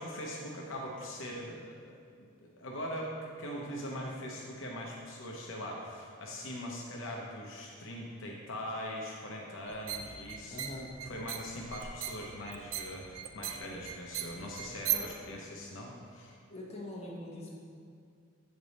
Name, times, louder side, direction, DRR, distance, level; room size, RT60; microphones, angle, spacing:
voice 1, 0.0-1.9 2.4-10.6 11.0-16.3, equal, 70° left, -2 dB, 0.7 m, -41 dB
sound 1, 9.7-15.2, right 10 dB, 85° right, 0.4 m, -39 dB
voice 2, 10.5-10.9 14.9-15.1 16.5-17.5, left 1 dB, 30° left, -5 dB, 1.0 m, -43 dB
8.0 x 3.4 x 4.0 m, 2.2 s
head